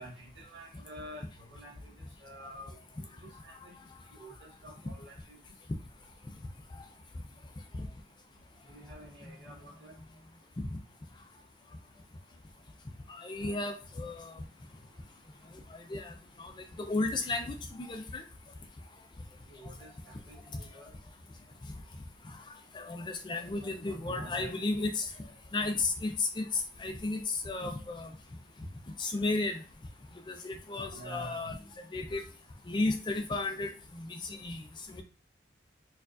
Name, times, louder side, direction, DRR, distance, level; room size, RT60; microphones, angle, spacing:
voice 1, 0.0-1.9 2.2-2.8 3.4-3.7 4.1-5.2 8.7-9.9 19.5-20.9 23.3-24.5 30.9-31.6, right 1 dB, 80° right, -2 dB, 1.3 m, -48 dB
voice 2, 13.1-14.4 15.7-16.5 16.8-18.2 20.5-20.6 22.3-22.4 22.7-28.1 29.0-29.6 30.3-31.6 31.9-32.2 32.7-35.0, left 3 dB, 25° left, 5 dB, 0.4 m, -34 dB
4.5 x 2.4 x 2.4 m, 0.37 s
head